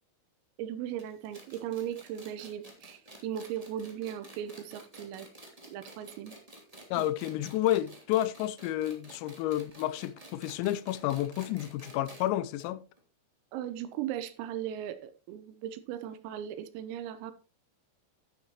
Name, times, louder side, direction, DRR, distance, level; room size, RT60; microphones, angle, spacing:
voice 1, 0.6-5.3 5.7-6.4 6.9-7.1 13.5-17.3, right 10 dB, 90° right, 3.7 m, -38 dB
sound 1, 1.0-12.3 12.6-12.7 13.0-13.1 13.9-14.0, right 1 dB, 30° right, 0.6 m, -51 dB
voice 2, 6.9-12.9, left 13 dB, 90° left, 3.4 m, -30 dB
12.0 x 10.5 x 3.0 m
omnidirectional pair, 5.9 m